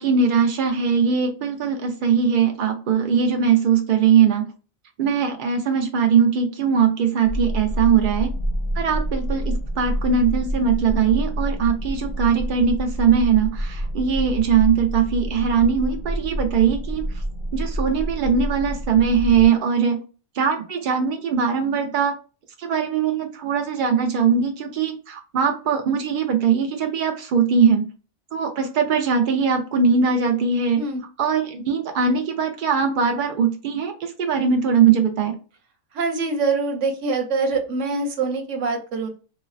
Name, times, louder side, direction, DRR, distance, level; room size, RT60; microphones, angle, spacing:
voice 1, 0.0-4.5 5.0-8.3 8.8-17.1 17.5-20.0 20.4-22.2 22.6-27.9 28.3-30.8 31.2-35.4, right 6 dB, 85° right, 0.4 m, -20 dB
sound 1, 7.2-19.5, right 1 dB, 55° left, 0.5 m, -28 dB
voice 2, 35.9-39.1, right 4 dB, 65° right, 1.0 m, -24 dB
3.8 x 2.0 x 2.5 m
omnidirectional pair, 1.4 m